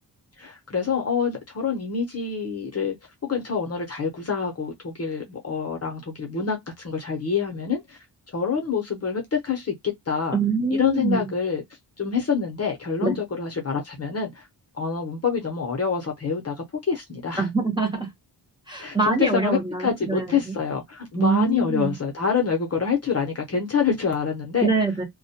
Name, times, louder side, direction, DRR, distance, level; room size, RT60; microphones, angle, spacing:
voice 1, 0.4-3.0 3.2-8.0 8.3-10.4 10.7-11.6 12.0-14.4 14.8-17.5 18.8-24.7, left 6 dB, 35° left, 0.7 m, -26 dB
voice 2, 10.3-11.3 13.0-13.2 17.4-18.1 18.7-20.5 21.2-21.9 24.6-25.0, right 3 dB, 10° right, 0.7 m, -24 dB
2.2 x 2.1 x 2.7 m
wide cardioid pair, 165°, 41 cm